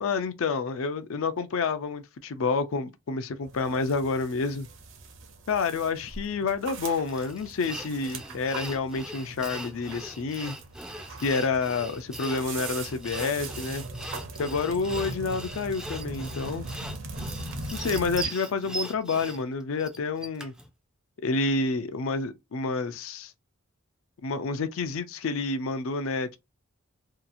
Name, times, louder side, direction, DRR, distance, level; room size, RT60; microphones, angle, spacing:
voice 1, 0.0-4.7 5.5-10.6 11.2-13.8 14.4-16.7 17.7-20.5 21.2-23.3 24.2-26.4, left 4 dB, 65° left, 0.4 m, -29 dB
sound 1, 3.4-18.3, right 2 dB, 60° right, 0.6 m, -40 dB
Sawing, 7.1-20.7, right 2 dB, 5° right, 0.3 m, -40 dB
2.8 x 2.3 x 2.5 m
head